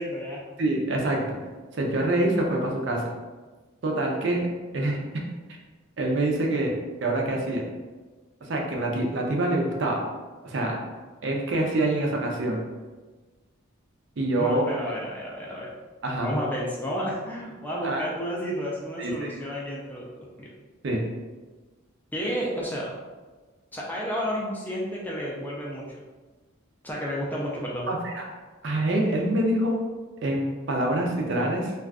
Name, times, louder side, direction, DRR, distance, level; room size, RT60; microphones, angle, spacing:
voice 1, 0.0-0.4 14.4-15.7 16.2-20.5 22.1-22.9 23.7-25.9 26.8-27.9, equal, 10° left, -4 dB, 0.3 m, -31 dB
voice 2, 0.6-1.4 1.7-3.0 3.8-4.4 4.7-5.0 6.0-6.7 7.0-7.6 8.4-10.0 10.4-10.8 11.2-12.6 14.2-14.7 16.0-16.3 17.8-18.1 19.0-19.3 20.8-21.0 27.9-28.2 28.6-29.8 30.2-31.7, right 1 dB, 55° right, 0 dB, 0.5 m, -25 dB
2.4 x 2.3 x 3.5 m, 1.3 s
head